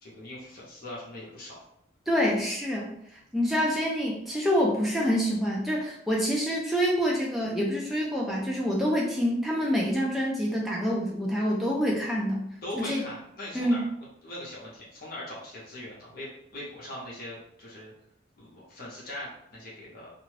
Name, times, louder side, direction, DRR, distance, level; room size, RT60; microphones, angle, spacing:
voice 1, 0.0-1.6 12.6-13.8 14.2-17.9 18.4-20.1, left 1 dB, 50° left, -5 dB, 0.8 m, -40 dB
voice 2, 2.1-2.9 3.3-12.4 12.7-13.0 13.5-13.8, equal, ahead, -4 dB, 0.5 m, -26 dB
2.6 x 2.3 x 3.2 m, 0.76 s
head